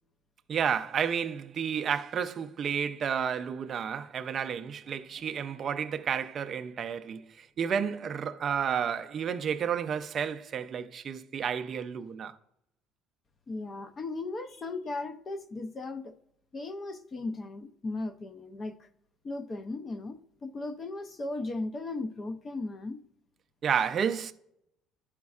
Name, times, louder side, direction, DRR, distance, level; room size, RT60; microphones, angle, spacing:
voice 1, 0.5-12.3 23.6-24.3, right 7 dB, 35° right, 0.4 m, -31 dB
voice 2, 13.5-16.1 16.5-18.9 19.2-23.0, left 2 dB, 25° left, 0.4 m, -37 dB
11.5 x 5.1 x 2.4 m
cardioid pair, 150°, 0 cm